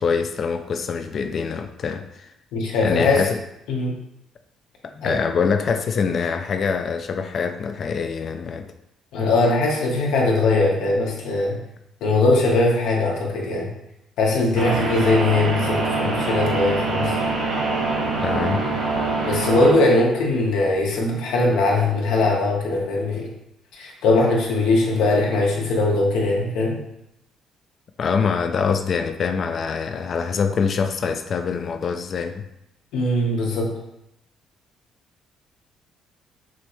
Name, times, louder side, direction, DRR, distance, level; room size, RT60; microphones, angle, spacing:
voice 1, 0.0-2.3 2.8-3.4 4.8-8.7 18.2-18.6 28.0-32.4, left 5 dB, 45° left, 8 dB, 0.3 m, -24 dB
voice 2, 2.5-3.3 3.7-4.0 5.0-5.1 9.1-11.6 12.0-13.7 14.2-17.2 19.2-23.3 23.7-26.8 32.9-33.7, left 2 dB, 85° left, -1 dB, 1.0 m, -20 dB
sound 1, 14.5-19.7, right 3 dB, 80° right, 1.2 m, -24 dB
6.0 x 2.2 x 3.0 m, 0.84 s
cardioid pair, 125°, 0 cm